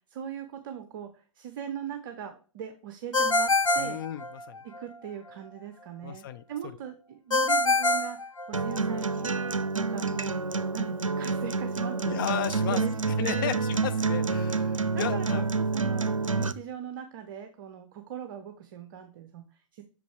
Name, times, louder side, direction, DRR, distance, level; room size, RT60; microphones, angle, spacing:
voice 1, 0.0-4.0 4.6-9.3 9.7-10.4 10.7-12.3 12.6-13.6 14.9-16.1 16.4-19.8, right 9 dB, 40° right, 6 dB, 0.7 m, -40 dB
Ringtone, 3.1-4.8 7.3-9.0, left 2 dB, 90° left, 0.5 m, -25 dB
voice 2, 3.8-4.6 6.0-6.7 9.3-9.4 12.0-12.8 13.1-15.5, left 10 dB, 45° left, 11 dB, 0.5 m, -34 dB
Acoustic guitar, 8.5-16.5, right 4 dB, 85° right, 0.5 m, -28 dB
6.4 x 5.1 x 3.3 m, 0.39 s
figure-of-eight pair, 115°, 16 cm